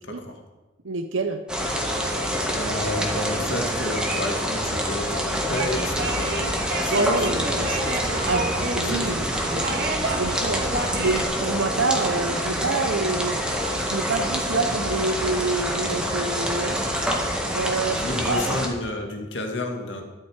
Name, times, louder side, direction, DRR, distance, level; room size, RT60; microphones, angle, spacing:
voice 1, 0.1-0.4 2.5-8.3 8.9-9.2 17.9-20.0, left 1 dB, 65° left, 3 dB, 1.9 m, -31 dB
voice 2, 0.8-1.4 6.9-7.8 8.3-9.7 10.0-13.4 13.8-16.8 17.5-18.5 20.0-20.1, right 3 dB, 85° right, 6 dB, 0.9 m, -27 dB
sound 1, 1.5-18.7, equal, 5° right, 1.7 m, -26 dB
sound 2, 5.5-11.2, right 2 dB, 50° right, 1.7 m, -31 dB
12.5 x 10.5 x 4.9 m, 1.2 s
head